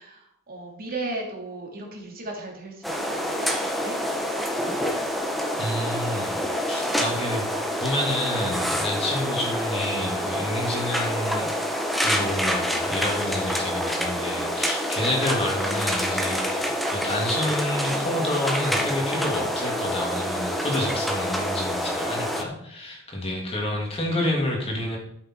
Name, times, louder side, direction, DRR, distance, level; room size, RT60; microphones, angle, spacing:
voice 1, 0.0-3.5 3.8-4.0, right 2 dB, 45° right, 0 dB, 2.8 m, -36 dB
sound 1, 2.8-22.4, equal, ahead, 1.5 m, -27 dB
voice 2, 5.6-6.4 6.7-7.4 7.8-11.5 12.0-25.0, left 1 dB, 25° left, -1 dB, 3.0 m, -29 dB
13.0 x 7.5 x 4.7 m, 0.73 s
head